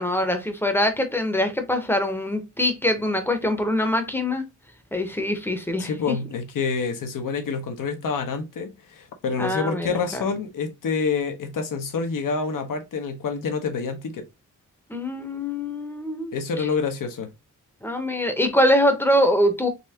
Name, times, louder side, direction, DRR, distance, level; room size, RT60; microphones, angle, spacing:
voice 1, 0.0-4.5 4.9-6.1 9.4-10.2 14.9-16.3 17.8-19.7, left 1 dB, 5° left, 0.8 m, -23 dB
voice 2, 5.8-14.3 16.3-17.3, left 5 dB, 80° left, 1.1 m, -27 dB
4.2 x 3.2 x 2.8 m
wide cardioid pair, 125°, 32 cm